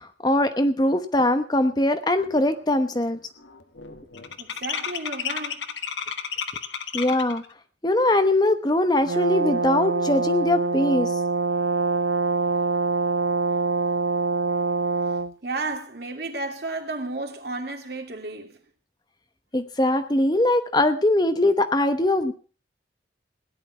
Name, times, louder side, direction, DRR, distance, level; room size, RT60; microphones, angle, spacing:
voice 1, 0.0-3.2 6.9-7.4 7.8-11.1 19.5-22.3, left 1 dB, 20° left, 0.9 m, -21 dB
sound 1, 2.2-2.6 2.8-7.5, left 7 dB, 80° left, 1.3 m, -33 dB
voice 2, 4.4-5.6 15.4-18.6, right 2 dB, 60° right, 2.8 m, -32 dB
Brass instrument, 9.1-15.3, right 4 dB, 85° right, 0.6 m, -24 dB
17.0 x 11.0 x 5.9 m
head